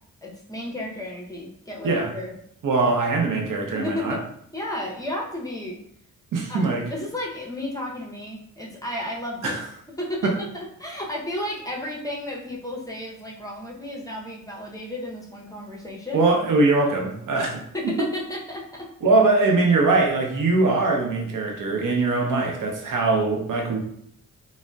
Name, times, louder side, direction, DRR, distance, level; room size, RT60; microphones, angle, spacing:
voice 1, 0.2-2.3 2.9-3.0 3.7-4.2 4.5-5.8 6.5-6.6 6.9-9.6 10.0-16.2 17.3-17.4 17.7-18.9, left 1 dB, 10° left, -3 dB, 0.6 m, -33 dB
voice 2, 2.6-4.2 6.3-6.8 9.4-9.6 10.2-10.3 16.1-17.9 19.0-23.8, right 3 dB, 75° right, 1 dB, 0.7 m, -22 dB
3.6 x 2.1 x 2.2 m, 0.71 s
cardioid pair, 80°, 32 cm